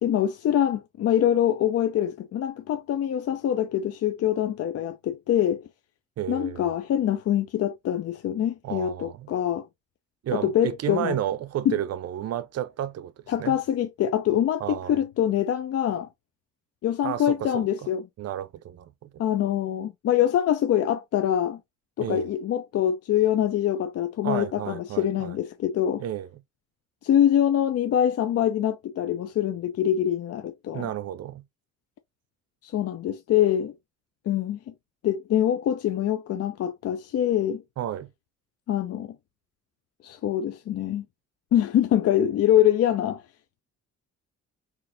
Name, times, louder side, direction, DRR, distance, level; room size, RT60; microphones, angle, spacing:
voice 1, 0.0-5.7 6.3-9.7 10.3-11.2 11.7-11.8 13.3-16.1 16.8-18.0 19.2-21.6 22.0-26.0 27.0-30.9 32.6-33.7 34.3-34.6 35.0-37.6 38.7-39.2 40.0-41.0 41.5-43.2, left 10 dB, 55° left, 0.5 m, -24 dB
voice 2, 6.2-6.7 8.6-9.3 10.2-13.6 14.6-15.0 17.0-17.7 18.2-19.1 22.0-22.3 24.2-25.4 26.0-26.3 30.7-31.4 37.8-38.1, right 11 dB, 55° right, 0.5 m, -32 dB
4.0 x 2.9 x 2.5 m
cardioid pair, 90°, 30 cm